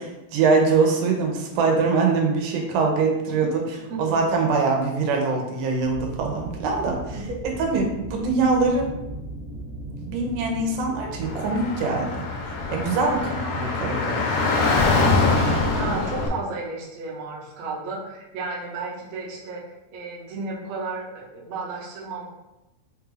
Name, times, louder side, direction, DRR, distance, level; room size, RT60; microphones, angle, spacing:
voice 1, 0.3-3.6 4.0-7.2 7.6-8.9 10.0-12.1 12.4-14.2, right 4 dB, 85° right, 1 dB, 2.3 m, -23 dB
sound 1, 5.8-12.9, right 1 dB, 40° right, 1.0 m, -38 dB
Car / Traffic noise roadway noise, 11.2-16.3, left 3 dB, 80° left, 1.8 m, -23 dB
voice 2, 15.7-19.6 19.9-22.3, right 3 dB, 70° right, -4 dB, 1.6 m, -33 dB
5.2 x 2.4 x 3.1 m, 0.96 s
omnidirectional pair, 3.7 m